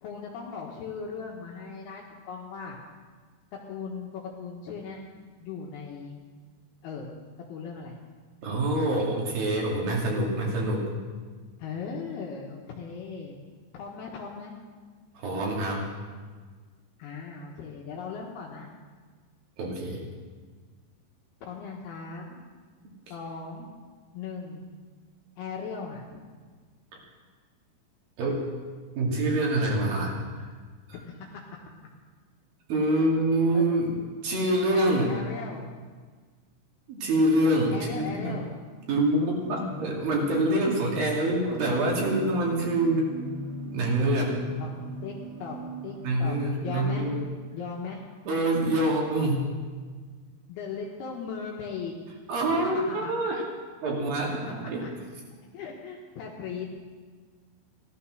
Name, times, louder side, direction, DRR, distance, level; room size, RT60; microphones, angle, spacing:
voice 1, 0.0-2.8 3.7-5.0 5.4-6.2 6.8-7.1 7.5-8.0 11.6-13.4 13.7-14.5 17.0-18.7 21.4-22.4 23.1-23.7 24.1-24.6 25.4-26.2 30.9-31.2 32.9-33.2 33.5-33.6 34.7-35.7 37.7-38.5 44.6-44.7 45.0-45.1 45.4-45.6 45.8-47.1 47.5-48.0 50.5-51.9 52.6-53.1 54.3-54.4 54.8-54.9 55.5-56.8, left 5 dB, 70° left, -2 dB, 3.1 m, -38 dB
voice 2, 8.4-10.9 15.2-15.9 19.6-20.0 26.9-27.0 28.2-28.4 29.0-30.1 30.4-30.5 32.7-35.1 36.9-38.4 38.9-43.1 43.6-44.3 46.0-47.2 48.3-49.5 52.3-53.4 53.8-54.9, right 1 dB, 60° right, -1 dB, 4.0 m, -26 dB
sound 1, 39.0-47.3, right 1 dB, 85° right, 4.4 m, -40 dB
16.0 x 12.5 x 6.4 m, 1.5 s
omnidirectional pair, 5.0 m